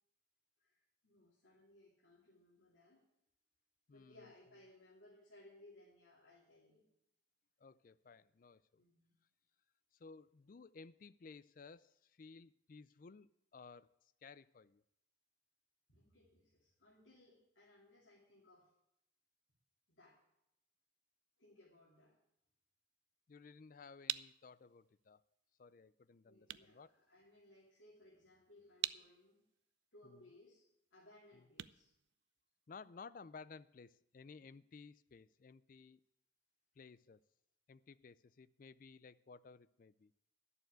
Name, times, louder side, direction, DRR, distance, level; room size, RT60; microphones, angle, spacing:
voice 1, 0.6-3.1 3.9-6.8 8.8-9.1 15.9-18.7 19.9-20.2 21.4-22.2 26.2-29.4 29.9-30.6 30.9-31.9 34.3-34.5, left 1 dB, 80° left, -6 dB, 2.8 m, -64 dB
voice 2, 3.9-4.3 7.6-8.8 10.0-13.9 14.2-14.8 23.3-25.2 25.6-26.9 30.0-30.2 31.3-31.4 32.7-36.0 36.8-37.2 37.7-40.1, left 4 dB, 45° left, 16 dB, 0.4 m, -57 dB
sound 1, 23.7-32.8, right 14 dB, 60° right, 0.3 m, -48 dB
10.5 x 6.9 x 8.9 m, 0.81 s
head